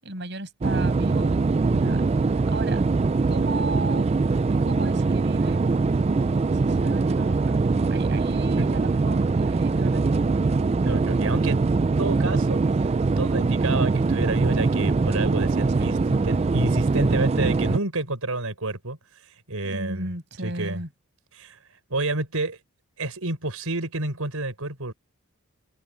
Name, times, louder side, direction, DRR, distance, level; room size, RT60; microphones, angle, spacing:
voice 1, 0.0-1.4 1.7-2.1 2.5-2.9 3.3-4.1 4.6-5.6 6.5-10.4 15.8-16.0 19.6-20.9, right 2 dB, 50° right, 6.8 m, -35 dB
sound 1, 0.6-17.8, right 3 dB, 30° right, 0.3 m, -22 dB
voice 2, 1.7-2.0 8.6-8.7 10.8-11.6 12.0-20.1 20.4-20.8 21.3-22.6 23.0-24.9, right 2 dB, 80° right, 4.3 m, -29 dB
head